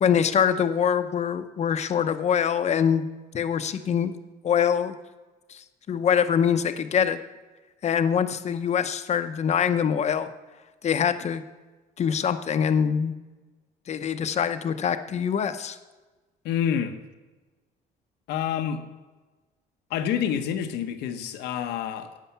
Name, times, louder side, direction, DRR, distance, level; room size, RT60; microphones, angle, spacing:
voice 1, 0.0-3.1 3.3-4.1 4.4-4.9 5.5-7.2 7.8-10.3 10.8-11.4 12.0-13.1 13.9-15.8, left 8 dB, 40° left, 0.7 m, -24 dB
voice 2, 16.4-17.0 18.3-18.8 19.9-22.2, left 9 dB, 85° left, 1.0 m, -28 dB
11.0 x 8.4 x 5.7 m
cardioid pair, 110°, 17 cm